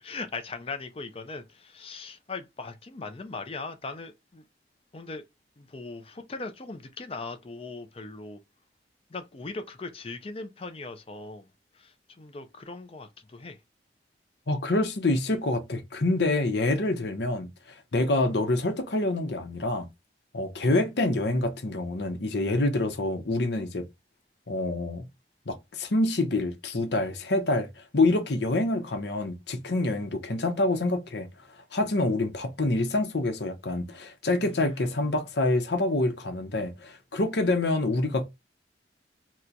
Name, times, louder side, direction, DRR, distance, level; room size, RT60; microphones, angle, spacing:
voice 1, 0.0-4.4 4.9-5.2 5.6-8.4 9.1-11.5 11.8-13.6 34.4-35.0, left 3 dB, 30° left, 0.5 m, -39 dB
voice 2, 14.5-17.5 17.9-19.9 20.3-23.9 24.5-25.1 25.5-27.7 27.9-31.3 31.7-38.3, left 2 dB, 70° left, 0.8 m, -26 dB
3.0 x 2.2 x 3.8 m
head